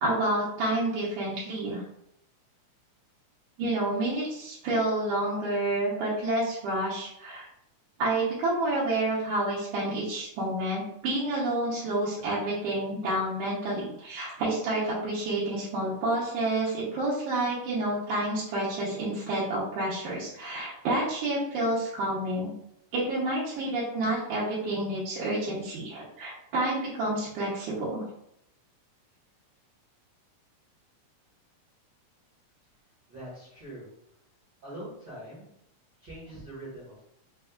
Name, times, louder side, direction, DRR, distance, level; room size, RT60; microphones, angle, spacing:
voice 1, 0.0-1.8 3.6-7.5 8.0-22.5 22.9-28.0, right 1 dB, 80° right, -7 dB, 2.3 m, -29 dB
voice 2, 33.1-33.9 34.6-35.5 36.0-37.1, right 1 dB, 55° right, -10 dB, 1.3 m, -43 dB
5.2 x 2.3 x 2.2 m, 0.74 s
omnidirectional pair, 3.6 m